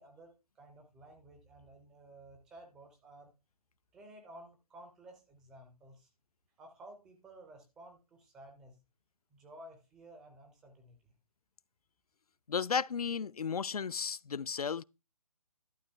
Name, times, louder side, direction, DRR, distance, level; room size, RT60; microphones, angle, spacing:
voice 1, 0.0-3.3 3.9-6.1 6.6-8.8 9.3-11.1, right 1 dB, 5° right, 0.4 m, -54 dB
voice 2, 12.5-14.8, left 6 dB, 85° left, 0.4 m, -34 dB
11.5 x 7.0 x 3.3 m
figure-of-eight pair, 155°, 19 cm